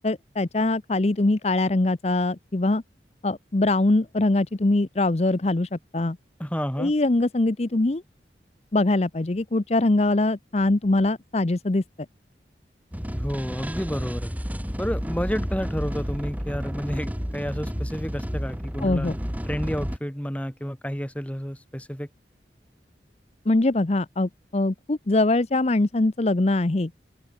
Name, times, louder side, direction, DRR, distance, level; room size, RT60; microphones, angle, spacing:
voice 1, 0.0-2.8 3.2-6.2 6.8-8.0 8.7-11.8 18.8-19.2 23.5-26.9, left 2 dB, 35° left, 0.7 m, -22 dB
voice 2, 6.4-6.9 13.1-14.3 14.8-19.1 19.5-22.1, equal, 10° left, 5.4 m, -30 dB
sound 1, 12.9-20.0, equal, 10° right, 6.9 m, -31 dB
open air
head